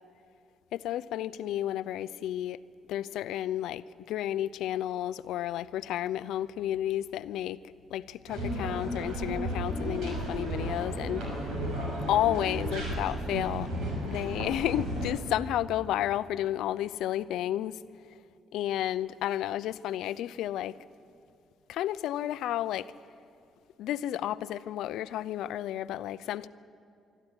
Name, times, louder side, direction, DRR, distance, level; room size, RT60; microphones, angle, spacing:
voice 1, 0.7-2.6 2.9-7.6 7.9-11.5 12.1-13.7 14.0-17.8 18.1-18.2 18.5-20.8 21.7-22.9 23.8-26.5, left 12 dB, 85° left, 15 dB, 0.5 m, -32 dB
sound 1, 8.3-15.1, equal, 85° right, 6.5 m, -33 dB
25.5 x 13.0 x 9.8 m, 2.4 s
cardioid pair, 90°, 0 cm